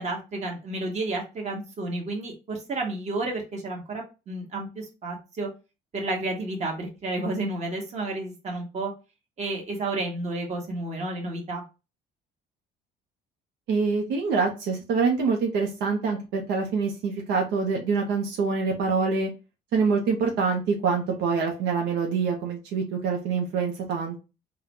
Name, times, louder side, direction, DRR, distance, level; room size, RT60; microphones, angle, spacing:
voice 1, 0.0-5.5 5.9-8.9 9.4-11.6, right 2 dB, 40° right, 0 dB, 1.3 m, -31 dB
voice 2, 13.7-19.3 19.7-24.2, right 5 dB, 85° right, 1 dB, 0.8 m, -25 dB
3.7 x 2.3 x 2.9 m, 0.28 s
cardioid pair, 110°, 17 cm